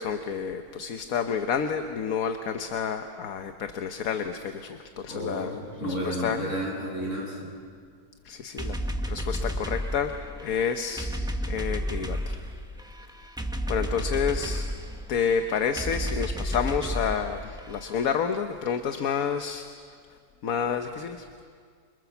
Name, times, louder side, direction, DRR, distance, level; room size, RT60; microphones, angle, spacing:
voice 1, 0.0-5.5 6.0-6.4 8.3-8.7 9.1-11.1 11.5-12.4 13.7-14.7 15.1-19.7 20.4-21.2, left 7 dB, 65° left, 7 dB, 1.4 m, -29 dB
voice 2, 5.1-7.4, equal, 50° left, -3 dB, 8.4 m, -32 dB
sound 1, 8.6-18.1, equal, 5° right, 0.9 m, -32 dB
28.0 x 25.5 x 7.1 m, 2.1 s
omnidirectional pair, 1.7 m